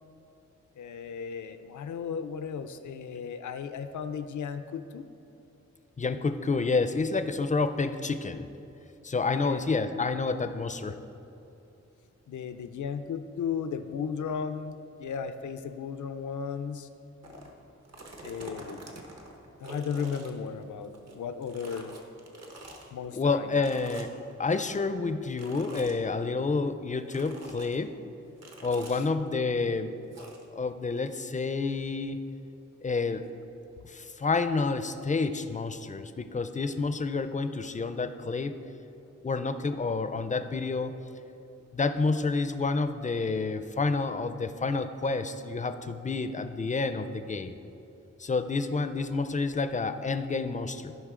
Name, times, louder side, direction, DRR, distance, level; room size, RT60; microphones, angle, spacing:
voice 1, 0.8-5.1 9.4-9.8 12.3-16.9 18.2-18.8 19.6-22.0 22.9-23.7 28.9-29.1, left 6 dB, 80° left, 10 dB, 0.5 m, -35 dB
voice 2, 6.0-8.5 9.0-11.0 23.2-24.1 24.4-28.0 28.6-29.9 30.5-32.2 32.8-33.3 33.8-38.5 39.2-40.9 41.7-47.6 48.2-50.9, left 4 dB, 25° left, 9 dB, 0.4 m, -29 dB
sound 1, 17.2-17.5 17.8-21.2 21.4-22.9 23.6-24.3 25.3-26.0 27.1-27.8 28.4-29.0 30.1-30.4, right 2 dB, 60° right, 1.2 m, -45 dB
15.5 x 5.2 x 3.7 m, 2.8 s
wide cardioid pair, 90°, 29 cm